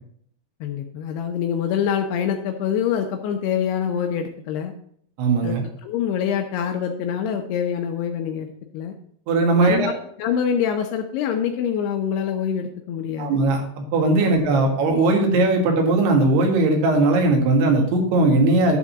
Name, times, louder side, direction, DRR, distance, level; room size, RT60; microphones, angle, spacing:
voice 1, 0.6-4.7 5.4-5.6 5.8-8.9 9.6-9.9 10.2-13.4 14.2-14.6, left 8 dB, 80° left, 4 dB, 2.7 m, -25 dB
voice 2, 5.2-5.6 9.3-9.9 13.2-18.8, right 2 dB, 75° right, 2 dB, 3.7 m, -19 dB
11.0 x 3.7 x 7.2 m, 0.66 s
omnidirectional pair, 4.8 m